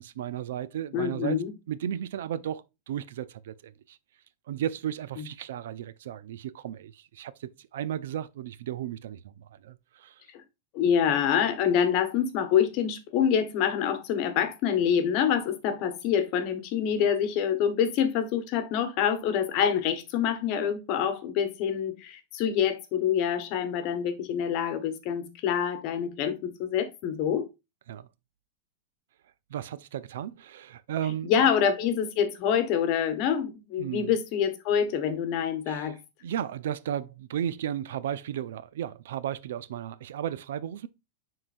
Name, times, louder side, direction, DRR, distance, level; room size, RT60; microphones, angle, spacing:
voice 1, 0.0-1.4 1.7-4.0 4.5-10.2 27.9-28.1 29.5-31.3 33.8-34.1 35.7-35.9 36.2-40.9, right 10 dB, 80° right, 0.5 m, -34 dB
voice 2, 0.9-1.5 5.2-5.3 10.3-10.4 10.7-27.5 31.2-36.0, left 8 dB, 40° left, 1.1 m, -26 dB
9.7 x 3.9 x 2.5 m
supercardioid pair, 165°, 0 cm